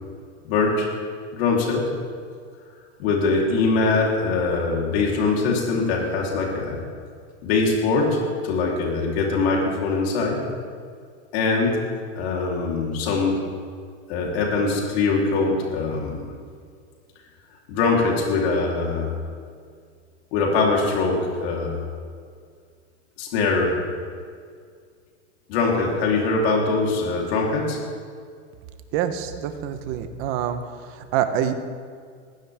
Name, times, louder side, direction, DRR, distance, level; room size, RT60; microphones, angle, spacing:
voice 1, 0.4-0.9 1.3-1.9 3.0-6.8 7.4-10.4 11.3-11.8 12.2-13.4 14.1-16.3 17.7-19.2 20.3-21.8 23.2-23.8 25.5-27.8, left 3 dB, 55° left, -2 dB, 3.9 m, -22 dB
voice 2, 28.9-31.5, right 10 dB, 35° right, 8 dB, 1.2 m, -26 dB
21.0 x 16.0 x 3.7 m, 2.1 s
supercardioid pair, 165°, 38 cm